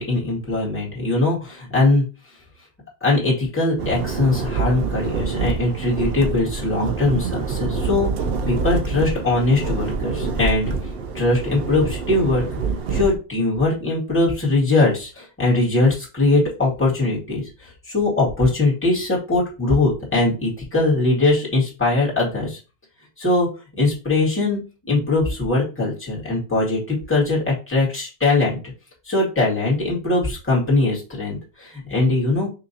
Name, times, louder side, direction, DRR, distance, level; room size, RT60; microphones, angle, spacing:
voice 1, 0.0-2.1 3.0-8.1 8.5-10.7 11.1-12.4 12.9-22.6 23.2-23.5 23.8-24.6 24.8-28.6 29.1-32.5, left 2 dB, 10° left, -6 dB, 1.9 m, -21 dB
sound 1, 3.8-13.2, right 5 dB, 60° right, 0.8 m, -26 dB
5.8 x 2.7 x 2.7 m, 0.31 s
omnidirectional pair, 1.2 m